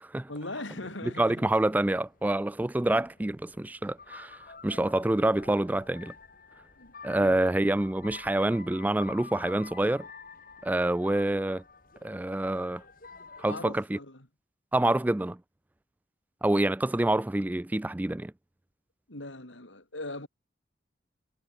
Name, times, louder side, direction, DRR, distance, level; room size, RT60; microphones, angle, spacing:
voice 1, 0.3-1.5 6.8-7.4 13.4-14.3 19.1-20.3, left 2 dB, 90° left, 7.5 m, -40 dB
voice 2, 1.2-6.1 7.0-10.1 10.6-11.6 12.0-12.8 13.4-14.0 14.7-15.4 16.4-18.3, right 1 dB, 10° right, 0.3 m, -27 dB
sound 1, 1.3-13.6, left 4 dB, 50° left, 4.7 m, -50 dB
head